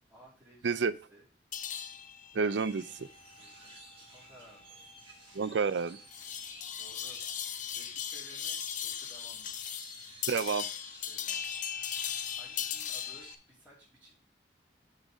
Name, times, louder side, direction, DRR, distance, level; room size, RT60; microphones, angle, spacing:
voice 1, 0.1-1.2 3.4-4.8 6.8-7.2 7.7-9.5 11.1-11.4 11.7-12.0 12.3-14.1, equal, 10° right, -9 dB, 2.6 m, -58 dB
sound 1, 1.5-13.3, left 9 dB, 45° left, 0.5 m, -39 dB
voice 2, 2.3-3.1 5.3-6.0 10.3-10.7, right 5 dB, 75° right, 15 dB, 0.5 m, -29 dB
sound 2, 2.5-13.4, right 1 dB, 30° right, 1.9 m, -53 dB
6.5 x 4.0 x 6.2 m, 0.37 s
head